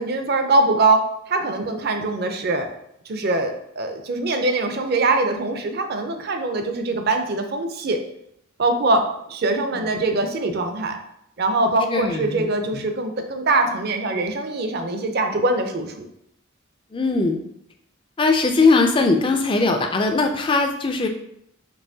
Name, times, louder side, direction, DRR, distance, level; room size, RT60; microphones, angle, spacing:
voice 1, 0.0-2.7 3.1-8.0 8.6-11.0 11.4-16.1, right 2 dB, 45° right, 6 dB, 0.5 m, -22 dB
voice 2, 11.9-12.5 12.7-12.8 16.9-17.4 18.2-21.1, left 3 dB, 25° left, 5 dB, 0.3 m, -20 dB
5.4 x 2.9 x 2.7 m, 0.76 s
head